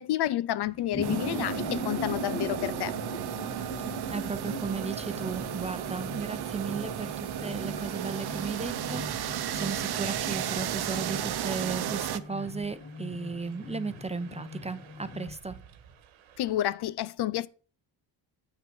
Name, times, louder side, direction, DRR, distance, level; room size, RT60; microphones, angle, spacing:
voice 1, 0.0-2.9 16.4-17.5, left 13 dB, 55° left, 0.6 m, -30 dB
sound 1, 0.6-15.3, left 2 dB, 25° left, 1.5 m, -40 dB
sound 2, 0.6-16.5, right 7 dB, 85° right, 1.5 m, -54 dB
sound 3, 1.0-12.2, right 11 dB, 55° right, 0.9 m, -34 dB
voice 2, 4.1-15.6, right 4 dB, 15° right, 0.7 m, -35 dB
8.2 x 6.6 x 6.2 m
cardioid pair, 85°, 47 cm